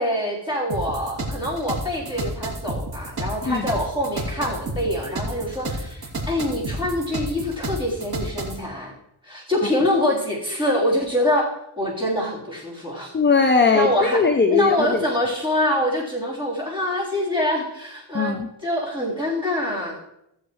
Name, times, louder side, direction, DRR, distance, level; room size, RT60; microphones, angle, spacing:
voice 1, 0.0-8.9 9.2-11.5 11.8-13.1 13.7-14.2 14.5-20.0, left 1 dB, 10° right, -7 dB, 3.9 m, -25 dB
sound 1, 0.7-8.6, right 1 dB, 50° right, 2.6 m, -30 dB
voice 2, 13.1-15.0 18.1-18.5, left 4 dB, 25° left, 5 dB, 0.6 m, -19 dB
16.0 x 7.1 x 3.2 m, 0.82 s
wide cardioid pair, 120°, 48 cm